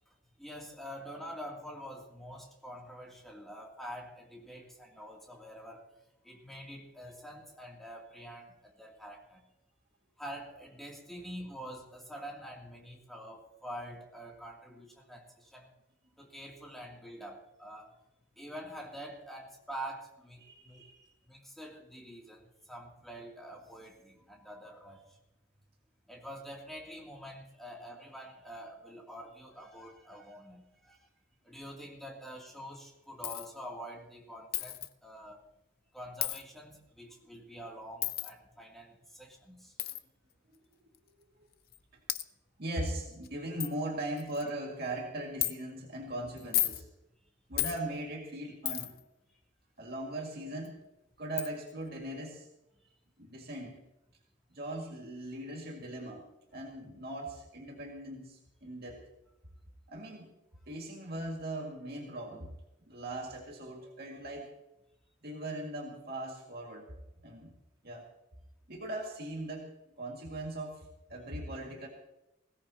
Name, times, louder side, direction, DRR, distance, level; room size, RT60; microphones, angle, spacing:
voice 1, 0.4-5.9 6.2-9.4 10.2-15.7 16.2-17.9 18.4-20.8 21.3-25.2 26.1-31.1 31.4-35.4 35.9-39.7 63.8-63.9, equal, ahead, -2 dB, 2.7 m, -46 dB
voice 2, 20.4-21.0 40.5-40.6 41.4-41.5 42.6-46.9 47.5-48.9 49.8-50.8 51.2-52.5 53.2-53.8 54.5-56.2 56.5-59.0 59.9-60.3 60.7-62.5 62.9-64.5 65.2-66.9 67.2-67.5 67.8-68.1 68.7-71.9, right 1 dB, 55° right, -1 dB, 2.1 m, -39 dB
Coin (dropping), 33.2-33.5 34.5-34.9 36.2-36.4 38.0-38.3 39.8-40.0 40.9-41.0 41.7-41.8 42.1-42.2 42.9-43.0 43.2-43.3 43.6-43.7 44.2-44.5 45.4-45.5 46.4-46.8 47.6-47.8 48.7-49.0 50.7-50.8 51.4-51.5, left 13 dB, 50° left, 0.6 m, -32 dB
20.5 x 17.0 x 2.9 m, 0.89 s
head